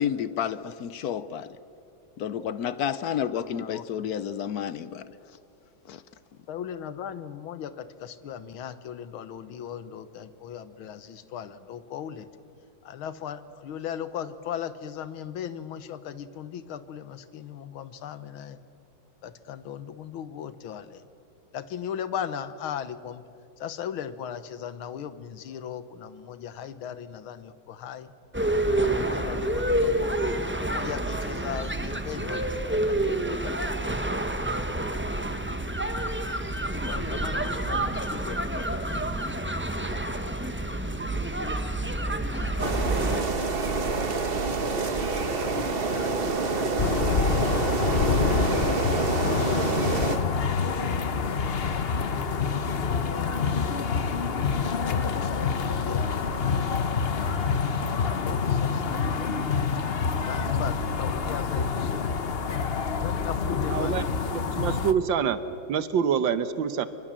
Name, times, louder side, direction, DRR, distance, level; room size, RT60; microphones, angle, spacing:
voice 1, 0.0-1.6 2.2-5.2 5.9-6.0, left 9 dB, 65° left, 1.0 m, -30 dB
voice 2, 3.5-4.1 6.5-12.3 12.8-18.6 19.2-21.0 21.5-23.2 23.6-28.1 28.6-30.2 30.6-34.7 35.6-35.7 36.7-39.1 39.4-40.4 42.3-42.7 44.5-48.4 54.9-56.2 57.5-59.9 60.2-62.1 63.0-64.0 66.1-66.2, left 9 dB, 80° left, 1.9 m, -38 dB
sound 1, 28.3-43.2, right 1 dB, 10° right, 0.5 m, -28 dB
sound 2, 42.6-50.2, right 3 dB, 30° right, 1.2 m, -27 dB
sound 3, 46.8-64.9, left 5 dB, 45° left, 0.8 m, -27 dB
voice 3, 63.7-64.0 64.3-65.4 65.7-66.9, right 7 dB, 70° right, 1.7 m, -26 dB
24.5 x 24.0 x 7.5 m
omnidirectional pair, 2.2 m